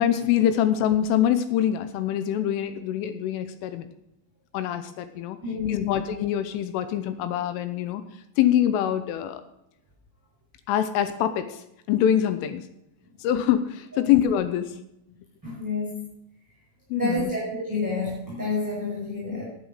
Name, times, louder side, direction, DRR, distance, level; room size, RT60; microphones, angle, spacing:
voice 1, 0.0-3.9 4.5-5.4 5.6-8.0 8.4-9.4 10.7-11.6 11.9-12.6 13.2-14.8 16.9-17.3, left 10 dB, 85° left, 11 dB, 3.2 m, -24 dB
voice 2, 5.4-6.0 14.0-14.1 15.4-16.1 16.9-19.4, left 3 dB, 5° right, -6 dB, 4.7 m, -29 dB
10.5 x 9.3 x 6.4 m, 0.82 s
omnidirectional pair, 5.8 m